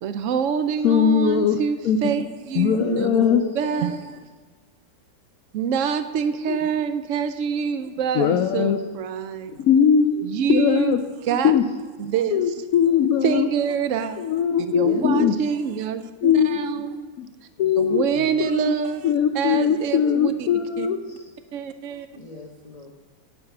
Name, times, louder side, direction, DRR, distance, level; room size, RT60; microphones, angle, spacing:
voice 1, 0.0-3.1 3.6-4.2 5.5-9.6 10.2-11.0 11.2-11.5 12.0-12.4 13.2-14.3 14.7-17.0 17.8-19.1 19.3-20.5 20.8-20.9 21.5-22.1, right 7 dB, 85° right, 10 dB, 0.6 m, -26 dB
voice 2, 0.8-1.6 1.8-2.0 2.6-3.4 6.5-6.6 8.1-8.8 9.6-11.0 11.4-11.6 12.3-13.5 14.2-15.4 16.2-16.6 17.6-18.0 18.4-18.7 19.0-21.0, left 8 dB, 65° left, 6 dB, 0.9 m, -20 dB
voice 3, 2.7-3.9 14.8-15.0 17.6-18.1 22.1-22.9, left 2 dB, 30° left, -1 dB, 0.7 m, -33 dB
9.6 x 5.4 x 8.2 m, 1.4 s
omnidirectional pair, 1.9 m